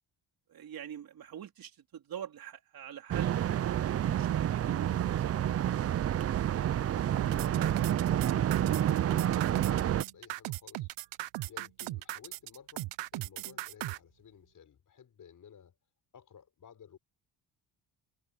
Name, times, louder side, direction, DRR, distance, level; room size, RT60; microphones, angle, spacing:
voice 1, 0.5-5.6, right 9 dB, 55° right, 3.9 m, -45 dB
sound 1, 3.1-10.0, right 11 dB, 35° right, 0.5 m, -29 dB
voice 2, 7.1-10.9 11.5-15.8 16.1-17.0, left 8 dB, 45° left, 5.7 m, -55 dB
sound 2, 7.2-14.0, right 17 dB, 85° right, 1.1 m, -38 dB
cardioid pair, 110°, 42 cm